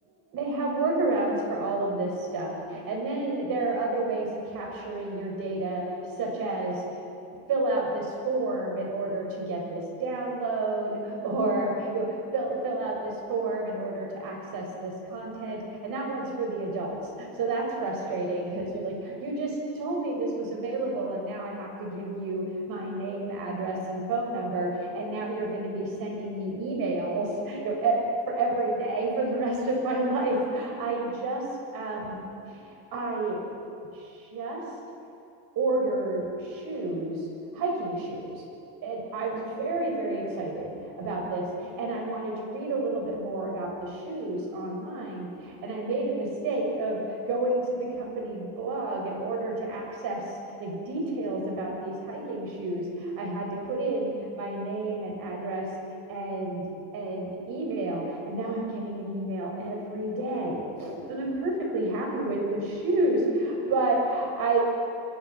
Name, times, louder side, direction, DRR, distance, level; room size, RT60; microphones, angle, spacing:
voice 1, 0.3-5.8 6.2-6.8 7.5-31.4 31.7-32.2 32.5-33.4 33.9-34.6 35.6-37.3 37.5-38.4 38.8-55.7 56.1-64.6, right 2 dB, 60° right, 0 dB, 7.5 m, -30 dB
27.5 x 22.0 x 6.1 m, 2.6 s
cardioid pair, 135°, 39 cm